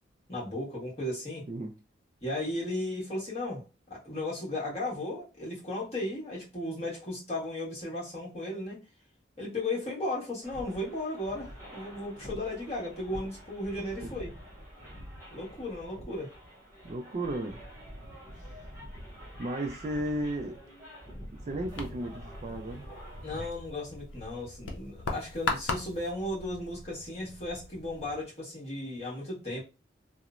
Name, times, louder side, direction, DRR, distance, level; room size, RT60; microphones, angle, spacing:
voice 1, 0.3-1.4 2.2-3.6 3.9-8.8 9.4-14.3 15.3-16.3 23.2-29.6, left 1 dB, 35° left, 1.3 m, -35 dB
sound 1, 10.4-23.5, equal, 15° right, 0.7 m, -46 dB
voice 2, 16.8-17.6 19.4-20.6 21.4-22.9, right 1 dB, 35° right, 0.3 m, -34 dB
sound 2, 21.7-28.2, left 3 dB, 85° left, 0.5 m, -39 dB
2.9 x 2.0 x 2.4 m
head